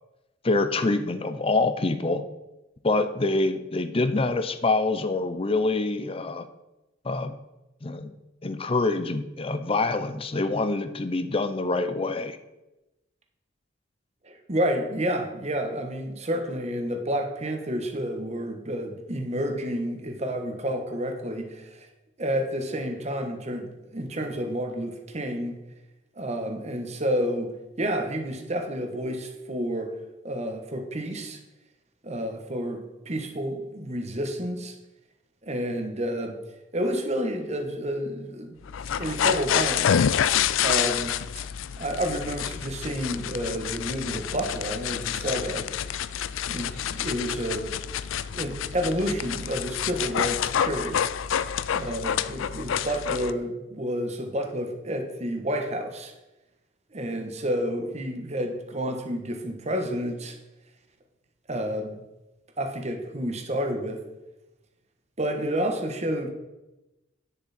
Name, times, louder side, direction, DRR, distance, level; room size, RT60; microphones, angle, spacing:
voice 1, 0.4-2.2 2.8-6.5 7.0-7.3 7.8-8.1 8.4-12.4, left 2 dB, 30° left, 10 dB, 0.6 m, -26 dB
voice 2, 14.2-21.9 22.2-25.6 26.2-27.5 27.8-29.9 30.2-31.4 32.0-34.7 35.4-36.4 36.7-38.6 39.0-39.9 40.6-41.1 41.8-45.7 46.5-47.7 48.3-51.0 51.7-56.1 56.9-60.4 61.5-62.0 62.6-64.0 65.2-66.3, equal, 35° right, 4 dB, 1.3 m, -30 dB
sound 1, 38.7-53.3, left 8 dB, 80° left, 0.4 m, -28 dB
9.8 x 6.9 x 4.3 m, 0.99 s
head